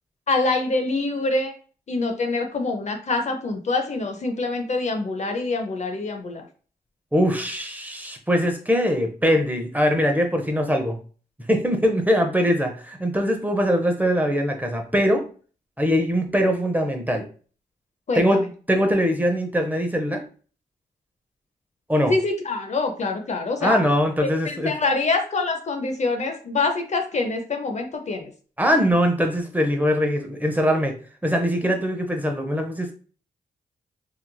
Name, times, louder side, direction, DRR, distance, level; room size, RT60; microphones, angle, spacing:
voice 1, 0.3-1.5 1.9-6.4 18.1-18.4 22.1-23.8 24.2-28.3, left 3 dB, 45° left, 5 dB, 0.5 m, -25 dB
voice 2, 7.1-11.0 11.5-15.2 15.8-17.2 18.1-20.2 21.9-22.1 23.6-24.7 28.6-30.9 31.2-32.9, equal, 10° right, 3 dB, 0.6 m, -22 dB
2.9 x 2.4 x 2.2 m, 0.39 s
supercardioid pair, 45°, 16 cm